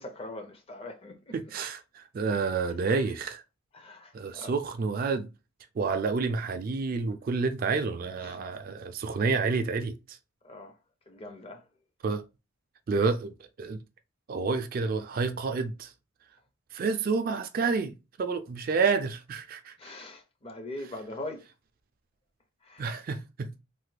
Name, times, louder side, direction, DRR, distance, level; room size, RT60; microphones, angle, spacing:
voice 1, 0.0-1.3 3.7-4.5 8.2-8.4 10.4-10.7 11.1-11.6 19.8-21.4 22.6-22.9, left 2 dB, 30° left, 0.5 m, -41 dB
voice 2, 1.3-3.4 4.1-5.3 5.8-10.2 12.0-12.2 12.9-13.8 14.3-15.9 16.7-19.9 22.8-23.5, right 4 dB, 45° right, 0.3 m, -29 dB
3.2 x 2.2 x 3.2 m
head